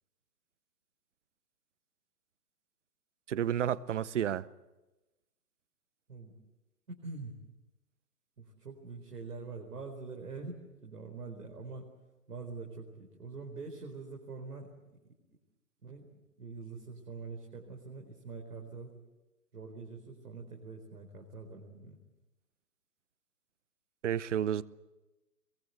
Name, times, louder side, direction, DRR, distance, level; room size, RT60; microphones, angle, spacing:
voice 1, 3.3-4.5 24.0-24.6, right 10 dB, 50° right, 19 dB, 0.9 m, -31 dB
voice 2, 6.9-7.4 8.4-10.6 10.8-11.9 12.3-14.7 15.8-16.1 16.4-19.0 19.5-22.0, right 4 dB, 70° right, 1 dB, 4.6 m, -44 dB
23.0 x 22.5 x 8.2 m, 1.0 s
figure-of-eight pair, 135°, 47 cm